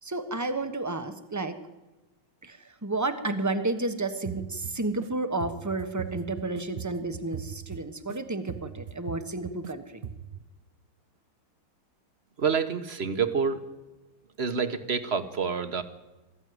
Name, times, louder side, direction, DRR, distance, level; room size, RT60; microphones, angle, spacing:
voice 1, 0.0-1.6 2.4-10.0, right 2 dB, 10° right, 9 dB, 0.9 m, -31 dB
sound 1, 4.2-5.1 5.4-8.2 8.5-9.7 10.0-10.4, right 8 dB, 65° right, 0.5 m, -40 dB
voice 2, 12.4-13.6 14.4-15.8, right 6 dB, 35° right, 10 dB, 1.3 m, -27 dB
21.0 x 14.5 x 9.6 m, 1.1 s
omnidirectional pair, 2.3 m